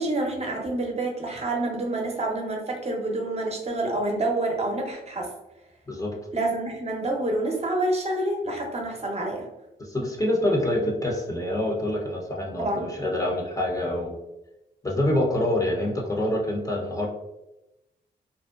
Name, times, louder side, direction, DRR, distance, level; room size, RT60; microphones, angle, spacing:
voice 1, 0.0-5.3 6.3-9.5 12.6-12.8, right 2 dB, 35° right, 1 dB, 0.7 m, -27 dB
voice 2, 9.8-14.1 14.8-17.1, left 1 dB, 20° left, -1 dB, 0.7 m, -26 dB
2.5 x 2.1 x 2.3 m, 0.94 s
supercardioid pair, 45°, 19 cm